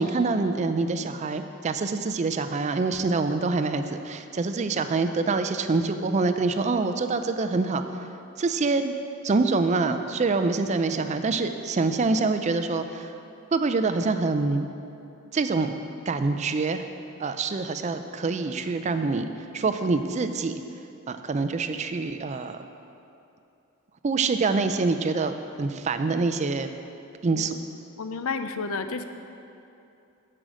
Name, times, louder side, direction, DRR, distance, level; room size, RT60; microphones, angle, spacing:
voice 1, 0.0-7.8 8.4-8.9 9.2-13.1 13.5-14.7 15.3-15.7 16.1-16.9 17.2-19.3 19.5-20.6 21.1-22.6 24.0-26.7 27.2-27.6, right 3 dB, 30° right, 9 dB, 0.4 m, -25 dB
voice 2, 28.0-29.0, left 4 dB, 75° left, 9 dB, 0.5 m, -30 dB
9.1 x 7.6 x 5.0 m, 2.7 s
head